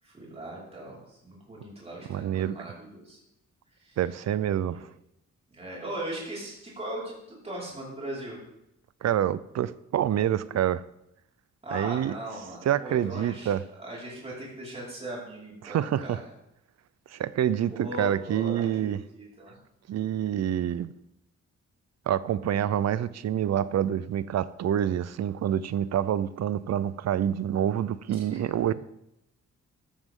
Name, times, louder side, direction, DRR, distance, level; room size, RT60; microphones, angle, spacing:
voice 1, 0.0-3.2 3.7-4.0 4.7-4.8 5.5-8.4 11.6-13.5 13.8-16.2 17.7-19.5, right 1 dB, 20° right, -5 dB, 5.1 m, -39 dB
voice 2, 2.1-2.6 4.0-4.9 9.0-10.8 11.7-12.1 12.6-13.6 15.6-16.2 17.1-19.0 19.9-20.9 22.1-28.7, right 10 dB, 65° right, 17 dB, 0.6 m, -27 dB
13.5 x 13.0 x 3.8 m, 0.83 s
wide cardioid pair, 170°, 29 cm